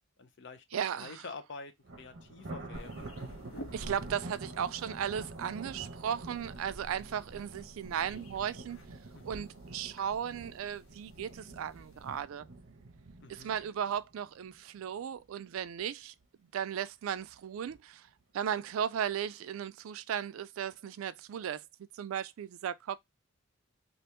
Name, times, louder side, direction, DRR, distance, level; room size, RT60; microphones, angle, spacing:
voice 1, 0.2-0.6 1.0-3.0 9.1-9.5 13.2-13.5, left 4 dB, 60° left, 0.6 m, -47 dB
voice 2, 0.7-1.2 3.7-8.8 9.2-12.5 13.3-16.1 16.5-18.1 18.3-21.6 21.9-23.0, right 8 dB, 80° right, 0.3 m, -36 dB
Thunder, 1.8-15.1 15.5-15.8 16.2-16.3 17.2-17.8, right 2 dB, 60° right, 0.8 m, -47 dB
sound 1, 2.7-12.2, right 1 dB, 75° left, 1.1 m, -51 dB
2.9 x 2.5 x 3.2 m
head